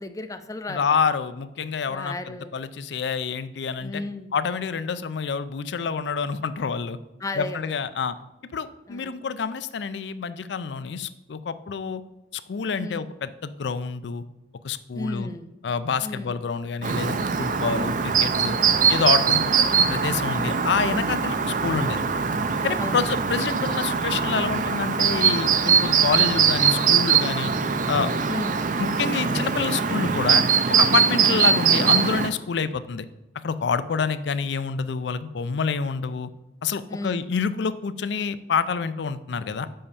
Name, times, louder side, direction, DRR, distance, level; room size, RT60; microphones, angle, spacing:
voice 1, 0.0-1.0 1.9-2.5 3.8-4.3 7.2-7.7 8.9-9.2 12.8-13.0 14.9-15.5 16.0-16.3 18.6-19.0 22.8-23.0 28.3-28.6 33.9-34.1 36.9-37.3, left 2 dB, 20° left, 9 dB, 0.5 m, -34 dB
voice 2, 0.7-4.0 4.3-7.0 7.4-8.2 8.5-12.0 12.3-14.2 14.6-15.3 15.6-18.6 18.9-21.4 21.6-22.0 22.6-27.5 27.9-28.2 28.8-30.4 30.7-33.1 33.4-36.3 36.6-39.7, left 5 dB, 75° left, 14 dB, 0.4 m, -27 dB
Chirp tweet, 16.8-32.3, right 6 dB, 45° right, 0.5 m, -22 dB
5.6 x 5.3 x 6.7 m, 1.0 s
head